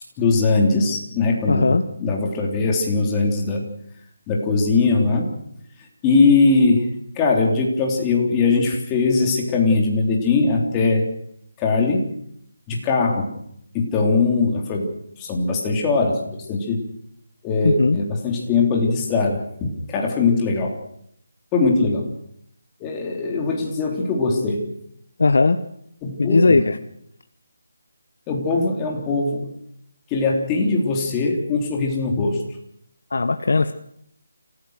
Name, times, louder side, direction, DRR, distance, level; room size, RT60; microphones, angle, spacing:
voice 1, 0.2-3.7 4.3-5.3 6.0-11.0 11.6-12.1 12.7-13.3 13.7-14.9 15.2-16.8 17.4-20.7 21.5-22.1 22.8-24.7 26.0-26.7 28.3-29.5 30.1-32.4, left 3 dB, 15° left, 0 dB, 3.5 m, -20 dB
voice 2, 1.5-1.8 17.6-18.0 25.2-25.6 26.2-26.8 33.1-33.7, left 3 dB, 70° left, 10 dB, 1.1 m, -17 dB
29.0 x 15.5 x 6.5 m, 0.72 s
figure-of-eight pair, 170°, 0 cm